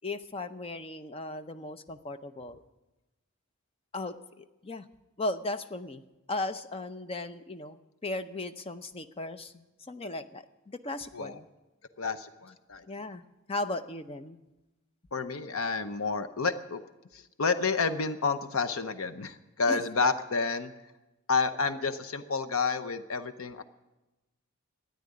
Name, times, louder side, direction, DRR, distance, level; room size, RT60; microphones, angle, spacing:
voice 1, 0.0-2.6 3.9-4.9 5.2-6.0 6.3-11.5 12.9-14.4 19.7-19.8, left 2 dB, 25° left, 10 dB, 0.6 m, -37 dB
voice 2, 12.0-12.9 15.1-16.8 17.1-20.7 21.3-23.6, left 4 dB, 70° left, 11 dB, 0.8 m, -30 dB
13.0 x 9.5 x 9.9 m, 1.1 s
head